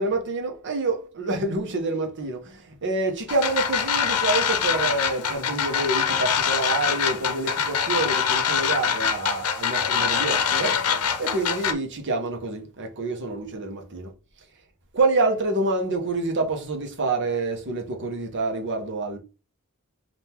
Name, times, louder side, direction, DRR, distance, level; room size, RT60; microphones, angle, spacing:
voice 1, 0.0-2.4 2.8-10.7 11.2-14.1 14.9-19.2, right 3 dB, 55° right, 0.9 m, -27 dB
sound 1, 3.3-11.7, left 7 dB, 85° left, 0.6 m, -24 dB
3.6 x 2.6 x 4.4 m
head